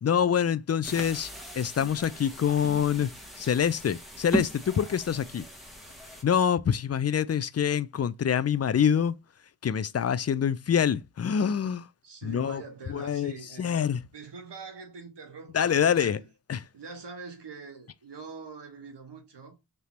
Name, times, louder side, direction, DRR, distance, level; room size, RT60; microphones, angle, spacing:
voice 1, 0.0-3.1 3.4-5.4 6.2-9.1 9.6-11.9 12.2-12.6 12.9-13.3 13.6-14.0 15.5-16.2 16.5-16.6, left 8 dB, 40° left, 0.4 m, -26 dB
sound 1, 0.8-6.2, right 1 dB, ahead, 1.4 m, -37 dB
voice 2, 12.0-13.8 14.1-16.3 16.7-19.6, right 4 dB, 80° right, 1.4 m, -44 dB
3.4 x 2.9 x 4.2 m
cardioid pair, 55°, 41 cm